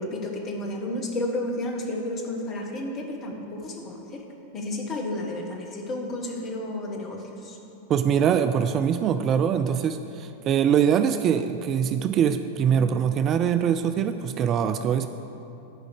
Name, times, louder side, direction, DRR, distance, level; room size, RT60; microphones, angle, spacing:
voice 1, 0.0-4.2 4.5-7.6, left 1 dB, 30° left, 2 dB, 1.3 m, -32 dB
voice 2, 7.9-15.1, right 8 dB, 30° right, 9 dB, 0.3 m, -23 dB
11.0 x 5.1 x 6.5 m, 2.9 s
figure-of-eight pair, 90°, 0 cm